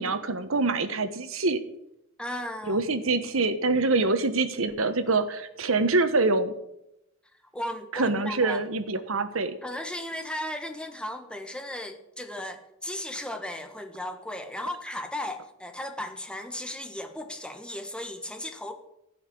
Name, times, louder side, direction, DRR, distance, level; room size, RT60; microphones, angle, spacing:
voice 1, 0.0-1.6 2.6-6.5 7.9-9.6, right 3 dB, 85° right, 10 dB, 1.2 m, -25 dB
voice 2, 2.2-2.8 7.5-8.6 9.6-18.7, left 1 dB, 5° left, 6 dB, 1.4 m, -36 dB
15.5 x 5.8 x 9.9 m, 0.83 s
head